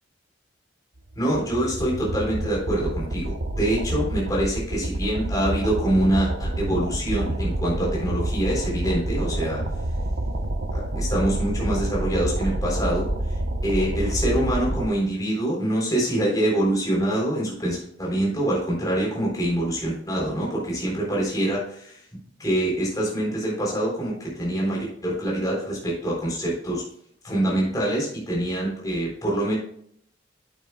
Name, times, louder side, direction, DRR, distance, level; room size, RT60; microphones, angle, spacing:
voice 1, 1.1-9.7 10.7-13.4 13.6-21.6 22.4-26.8 27.2-29.5, right 1 dB, 20° left, -4 dB, 3.7 m, -25 dB
sound 1, 1.1-14.9, right 1 dB, 85° right, 1.0 m, -28 dB
9.1 x 8.4 x 2.3 m, 0.66 s
head